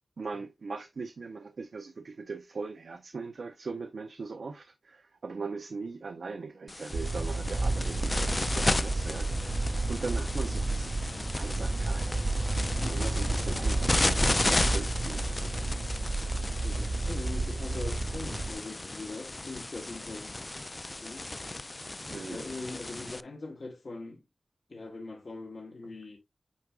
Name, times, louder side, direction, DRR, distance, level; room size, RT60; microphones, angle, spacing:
voice 1, 0.2-10.9 11.3-12.3 12.8-15.3 22.1-22.5, right 4 dB, 85° right, 0.6 m, -40 dB
sound 1, 6.7-23.2, left 2 dB, 35° left, 0.3 m, -34 dB
sound 2, 6.9-18.5, right 2 dB, 65° right, 2.2 m, -31 dB
voice 2, 16.6-20.4 20.9-21.3 22.1-24.2 24.7-26.2, left 3 dB, 65° left, 1.1 m, -41 dB
8.4 x 4.8 x 2.4 m
wide cardioid pair, 70°, 0 cm